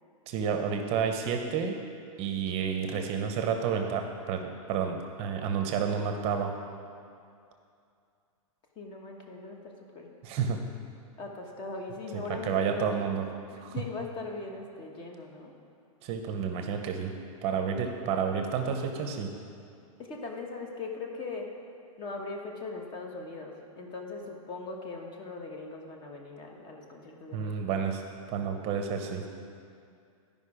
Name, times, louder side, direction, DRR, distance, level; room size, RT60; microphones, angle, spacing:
voice 1, 0.3-1.8 2.2-6.5 10.2-10.6 12.1-13.2 13.6-13.7 16.0-17.1 17.4-19.3 27.3-28.0 28.3-29.2, right 7 dB, 35° right, 5 dB, 0.7 m, -30 dB
voice 2, 8.8-10.1 11.2-12.9 13.5-15.5 17.8-17.9 20.0-21.5 22.0-27.5, left 3 dB, 25° left, 1 dB, 1.2 m, -40 dB
12.0 x 5.2 x 4.9 m, 2.4 s
hypercardioid pair, 140°, 18 cm